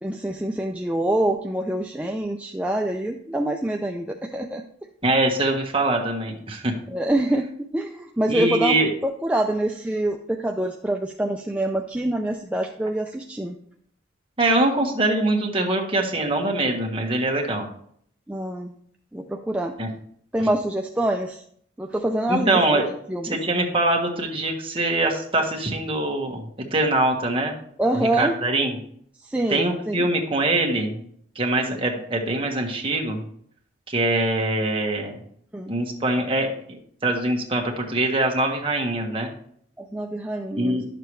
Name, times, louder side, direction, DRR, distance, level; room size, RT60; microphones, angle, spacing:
voice 1, 0.0-4.6 6.9-13.6 18.3-18.7 19.1-19.7 20.3-21.4 21.8-22.6 23.1-23.4 27.8-28.3 29.2-30.1 35.5-35.7 39.8-40.8, right 1 dB, 5° right, 2 dB, 0.4 m, -25 dB
voice 2, 5.0-6.7 8.3-8.9 14.4-17.7 19.8-19.9 22.3-22.9 23.2-26.4 26.7-27.5 27.9-28.8 29.5-31.0 31.3-33.2 33.9-35.1 35.7-39.3 40.6-40.8, right 2 dB, 30° right, 1 dB, 1.5 m, -23 dB
11.5 x 6.8 x 3.2 m, 0.64 s
head